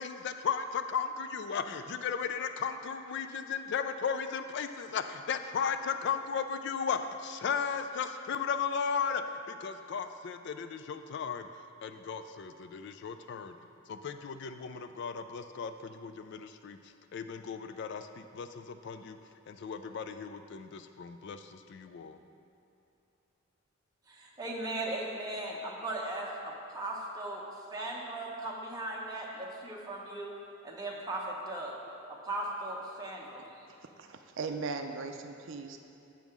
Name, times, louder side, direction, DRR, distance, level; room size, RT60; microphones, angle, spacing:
voice 1, 0.0-9.2 9.5-11.5 11.8-13.5 13.9-16.8 17.1-19.2 19.5-22.2, left 6 dB, 55° left, 9 dB, 0.3 m, -35 dB
voice 2, 24.1-27.4 27.7-30.3 30.6-31.7 32.1-33.5, right 2 dB, 20° right, -3 dB, 1.1 m, -38 dB
voice 3, 34.0-35.8, right 4 dB, 60° right, 6 dB, 0.5 m, -38 dB
7.5 x 5.4 x 6.1 m, 2.8 s
head